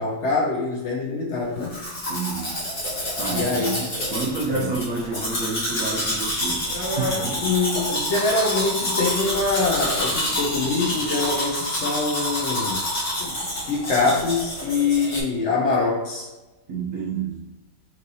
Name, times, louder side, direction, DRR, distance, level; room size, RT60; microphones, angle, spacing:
voice 1, 0.0-1.8 3.3-3.7 4.5-4.7 7.4-12.8 13.2-13.3 13.7-16.3, left 3 dB, 85° left, -2 dB, 0.6 m, -24 dB
Domestic sounds home sounds, 1.6-15.2, left 1 dB, 40° left, 1.4 m, -28 dB
voice 2, 2.1-2.6 3.2-3.8 4.1-7.5 13.3-13.4 16.7-17.5, right 4 dB, 60° right, -4 dB, 1.1 m, -29 dB
sound 1, 6.6-8.5 8.9-11.3, left 1 dB, 65° left, 1.7 m, -35 dB
5.6 x 3.1 x 2.7 m, 1.1 s
omnidirectional pair, 2.2 m